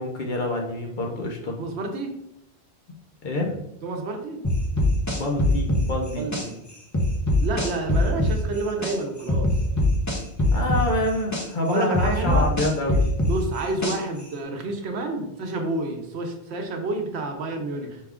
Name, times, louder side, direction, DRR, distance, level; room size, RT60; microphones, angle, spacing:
voice 1, 0.0-1.6 3.2-3.6 5.1-6.2 10.5-13.1, left 2 dB, 50° left, 0 dB, 0.8 m, -27 dB
voice 2, 1.6-2.2 3.8-4.4 6.2-6.6 7.4-9.5 11.7-12.5 13.2-18.0, right 2 dB, 75° right, 4 dB, 1.0 m, -29 dB
sound 1, 4.4-6.5 6.9-9.0 9.3-11.5 11.9-14.2, left 2 dB, 20° left, 0.5 m, -22 dB
4.9 x 2.3 x 3.5 m, 0.80 s
omnidirectional pair, 1.1 m